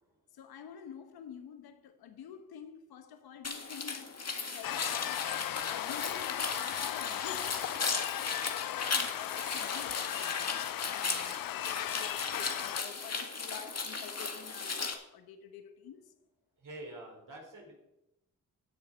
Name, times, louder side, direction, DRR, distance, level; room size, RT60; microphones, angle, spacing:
voice 1, 0.3-4.2 4.5-5.3 5.7-7.7 8.1-16.1, left 8 dB, 90° left, 1.2 m, -49 dB
sound 1, 3.4-14.9, left 4 dB, 45° left, 2.1 m, -37 dB
sound 2, 4.6-12.8, left 13 dB, 70° left, 0.5 m, -37 dB
voice 2, 16.6-17.7, right 1 dB, 60° right, 4.4 m, -46 dB
14.0 x 7.1 x 5.2 m
supercardioid pair, 45°, 36 cm